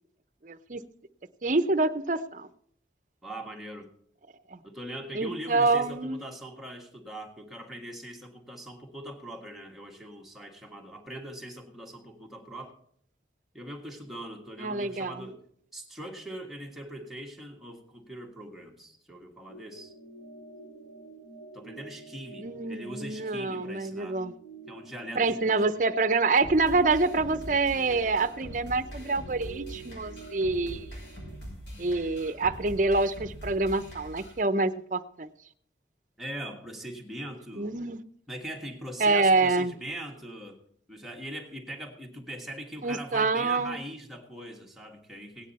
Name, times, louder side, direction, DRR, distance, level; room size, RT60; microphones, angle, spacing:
voice 1, 0.4-0.8 1.4-2.5 5.2-6.2 14.6-15.2 22.4-24.3 25.2-30.9 31.8-35.3 37.6-38.0 39.0-39.7 42.8-43.8, right 3 dB, 45° right, 13 dB, 0.6 m, -26 dB
voice 2, 3.2-3.9 4.6-12.7 13.5-15.4 15.7-19.9 21.5-24.2 24.7-25.6 36.2-37.7 38.3-40.6 40.9-45.5, right 1 dB, ahead, 0 dB, 1.6 m, -41 dB
sound 1, 19.5-31.4, right 4 dB, 60° left, 2.0 m, -48 dB
sound 2, 26.4-34.4, equal, 80° left, 6.2 m, -43 dB
17.5 x 9.7 x 4.2 m, 0.65 s
head